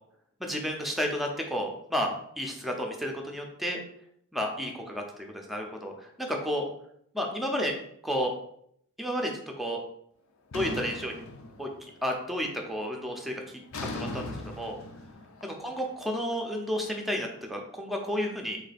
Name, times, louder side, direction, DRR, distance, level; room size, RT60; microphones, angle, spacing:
voice 1, 0.4-3.8 4.3-5.0 5.5-6.6 7.1-7.7 8.0-8.3 9.0-9.3 9.6-9.8 10.5-11.1 11.6-11.7 12.0-13.4 13.7-14.8 15.4-18.6, equal, ahead, 1 dB, 0.6 m, -31 dB
sound 1, 10.5-12.1 12.4-12.8 13.7-16.8, left 2 dB, 60° left, 0.6 m, -39 dB
3.7 x 3.3 x 4.1 m, 0.70 s
head